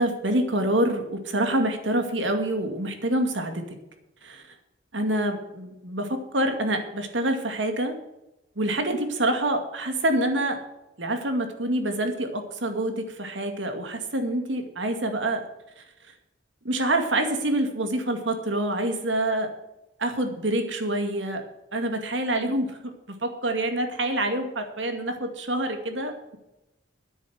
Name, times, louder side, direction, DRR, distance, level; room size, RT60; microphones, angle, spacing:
voice 1, 0.0-3.8 4.2-4.5 4.9-8.0 8.6-10.6 11.0-15.5 15.8-15.9 16.6-19.5 20.0-21.4 21.7-22.9 23.2-26.4, right 1 dB, 85° right, 5 dB, 2.2 m, -26 dB
10.5 x 8.4 x 7.8 m, 0.92 s
head